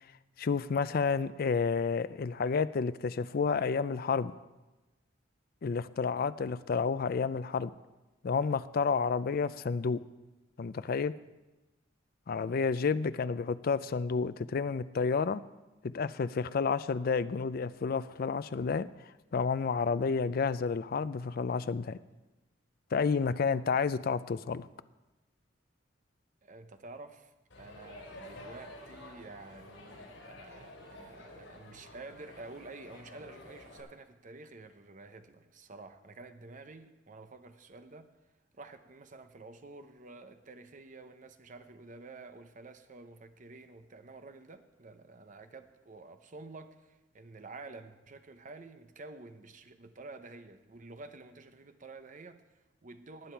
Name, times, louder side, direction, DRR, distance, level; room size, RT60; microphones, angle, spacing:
voice 1, 0.4-4.3 5.6-7.7 8.2-10.0 10.6-11.1 12.3-15.4 15.9-18.9 19.3-22.0 22.9-24.7, left 5 dB, 50° left, 15 dB, 0.4 m, -30 dB
voice 2, 12.5-12.9 26.4-38.1 38.5-53.3, right 3 dB, 40° right, 9 dB, 0.8 m, -50 dB
Crowd, 27.5-33.8, left 1 dB, 85° left, 4.2 m, -50 dB
18.5 x 8.7 x 4.5 m, 1.1 s
head